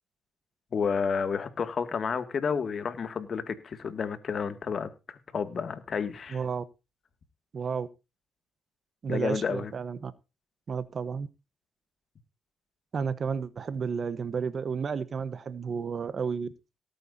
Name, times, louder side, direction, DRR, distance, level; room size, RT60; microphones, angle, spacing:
voice 1, 0.7-6.4 9.1-9.7, left 6 dB, 50° left, 2.2 m, -31 dB
voice 2, 6.3-6.6 7.5-7.9 9.0-10.1 10.7-11.3 12.9-16.5, right 6 dB, 45° right, 1.1 m, -32 dB
18.5 x 9.2 x 2.8 m
cardioid pair, 90°, 0 cm